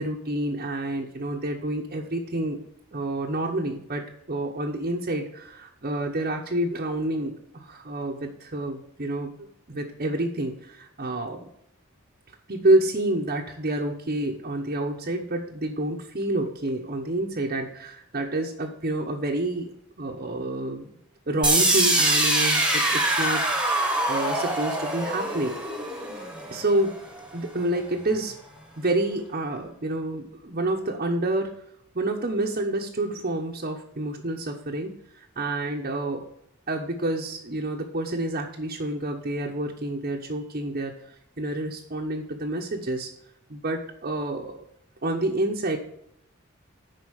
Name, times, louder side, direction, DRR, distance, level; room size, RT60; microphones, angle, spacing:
voice 1, 0.0-2.6 2.9-11.5 12.5-19.7 20.0-20.9 21.3-23.7 24.1-25.6 26.5-27.0 27.3-28.3 28.8-31.6 31.9-36.2 36.7-40.9 41.4-43.1 43.5-44.6 45.0-45.8, right 1 dB, 45° right, -1 dB, 1.0 m, -28 dB
sound 1, 21.4-27.4, right 1 dB, 5° right, 1.6 m, -24 dB
11.0 x 4.7 x 6.4 m, 0.73 s
head